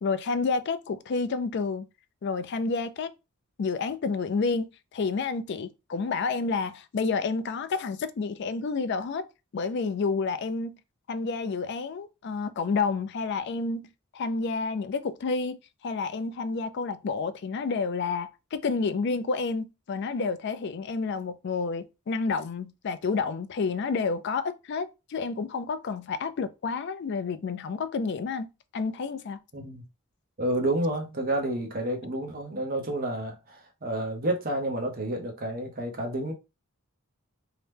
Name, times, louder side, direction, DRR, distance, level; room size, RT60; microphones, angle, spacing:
voice 1, 0.0-1.9 2.2-3.1 3.6-9.3 9.5-10.8 11.1-15.6 15.8-28.5 28.7-29.4, left 4 dB, 55° left, 0.4 m, -30 dB
voice 2, 30.4-36.3, right 1 dB, 45° right, 0.8 m, -30 dB
2.8 x 2.2 x 3.3 m
head